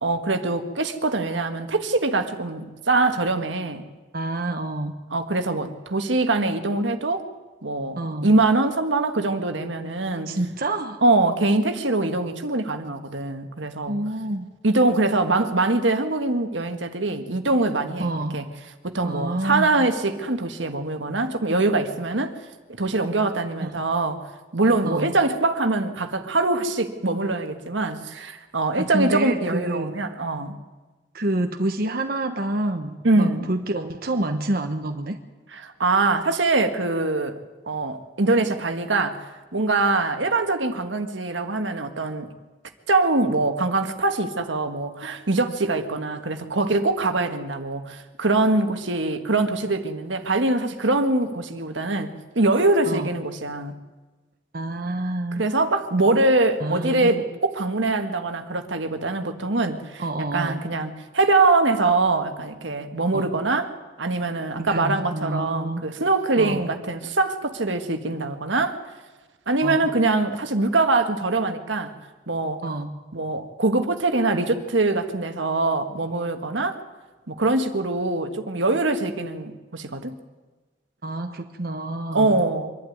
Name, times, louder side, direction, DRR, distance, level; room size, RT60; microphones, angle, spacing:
voice 1, 0.0-3.9 5.1-7.2 7.6-10.4 11.0-14.0 14.6-22.4 22.8-24.2 24.5-30.6 33.0-33.5 35.5-37.4 37.7-39.2 39.5-42.3 42.9-53.7 55.3-63.7 64.0-68.8 69.5-71.9 72.3-72.6 73.1-76.8 77.3-80.1 82.1-82.7, right 2 dB, 80° right, 7 dB, 1.6 m, -23 dB
voice 2, 4.1-4.9 8.0-8.3 10.3-11.0 13.9-14.5 18.0-18.4 19.0-19.9 23.6-23.8 24.8-25.1 28.8-30.0 31.1-35.2 52.9-53.1 54.5-55.4 56.6-57.1 60.0-60.6 63.1-63.3 64.6-65.9 66.4-66.7 69.6-69.9 72.6-73.0 81.0-82.4, right 1 dB, 50° right, 5 dB, 1.2 m, -28 dB
24.5 x 12.0 x 9.5 m, 1.3 s
head